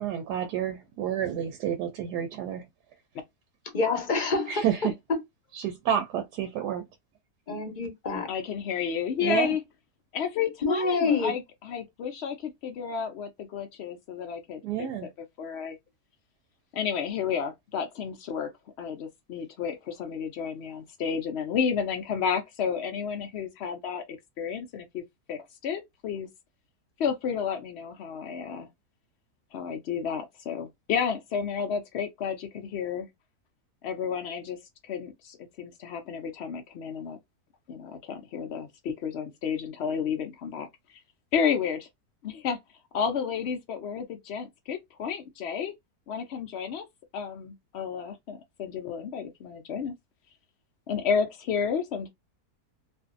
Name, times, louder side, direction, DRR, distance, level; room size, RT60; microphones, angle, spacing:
voice 1, 0.0-2.7 4.5-4.9 5.5-6.8 9.2-9.5 14.6-15.1, right 9 dB, 85° right, 1.1 m, -29 dB
voice 2, 3.7-4.7 7.5-8.3 10.6-11.3, left 4 dB, 40° left, 0.7 m, -26 dB
voice 3, 8.3-9.6 10.1-14.6 15.4-15.8 16.7-18.5 18.8-25.0 25.3-26.3 27.0-28.7 29.5-33.1 33.8-37.2 37.7-41.0 41.3-41.9 42.2-42.6 42.9-45.7 46.1-46.9 47.1-49.9 50.9-52.1, left 7 dB, 80° left, 0.5 m, -31 dB
2.6 x 2.5 x 2.4 m
omnidirectional pair, 1.7 m